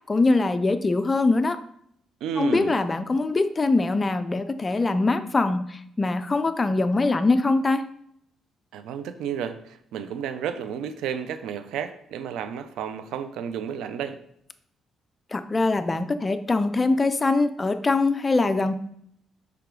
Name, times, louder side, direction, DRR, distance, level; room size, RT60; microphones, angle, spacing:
voice 1, 0.1-1.6 2.4-7.9 15.3-18.8, left 3 dB, 25° left, 10 dB, 0.5 m, -23 dB
voice 2, 2.2-2.8 8.7-14.2, right 8 dB, 85° right, 11 dB, 0.5 m, -32 dB
5.7 x 4.8 x 3.8 m, 0.69 s
cardioid pair, 90°, 0 cm